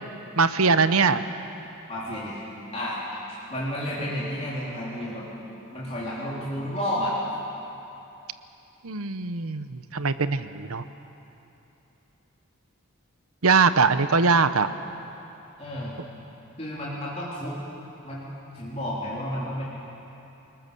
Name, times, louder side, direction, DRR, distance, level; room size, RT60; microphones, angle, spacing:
voice 1, 0.4-1.2 8.8-10.8 13.4-14.7 16.0-16.1, right 4 dB, 80° right, 12 dB, 0.9 m, -22 dB
voice 2, 1.9-2.4 2.7-3.0 3.5-5.3 5.7-7.1 15.6-16.0 16.6-17.6 18.0-19.6, equal, 30° left, -7 dB, 3.7 m, -31 dB
28.5 x 20.0 x 6.9 m, 3.0 s
head